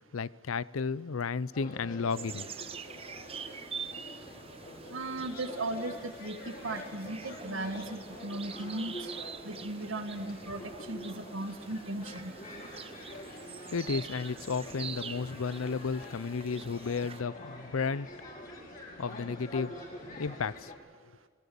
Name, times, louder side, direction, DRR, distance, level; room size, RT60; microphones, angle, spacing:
voice 1, 0.0-2.5 13.7-18.1 19.0-19.8 20.2-20.7, left 5 dB, 85° left, 20 dB, 0.6 m, -33 dB
sound 1, 1.5-20.8, left 1 dB, 40° left, 5.6 m, -46 dB
sound 2, 2.1-17.2, right 6 dB, 30° right, 0.8 m, -45 dB
voice 2, 4.9-8.9 9.4-12.3, right 2 dB, 75° right, 6 dB, 1.6 m, -37 dB
27.0 x 20.0 x 6.9 m, 1.5 s
head